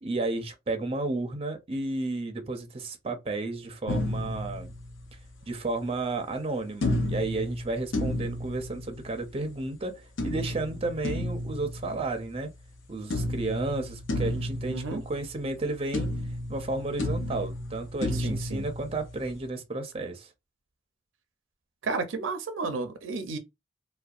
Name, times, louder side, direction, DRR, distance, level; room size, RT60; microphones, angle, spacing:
voice 1, 0.0-4.7 5.5-12.5 12.9-16.1 16.5-20.3, right 2 dB, 30° right, 0.5 m, -32 dB
sound 1, 3.9-5.4 6.8-9.4 10.2-12.8 13.1-15.7 15.9-19.4, left 1 dB, 75° left, 0.6 m, -32 dB
voice 2, 14.7-15.0 18.1-18.7 21.8-23.4, right 3 dB, 85° right, 0.5 m, -32 dB
2.6 x 2.2 x 2.4 m
head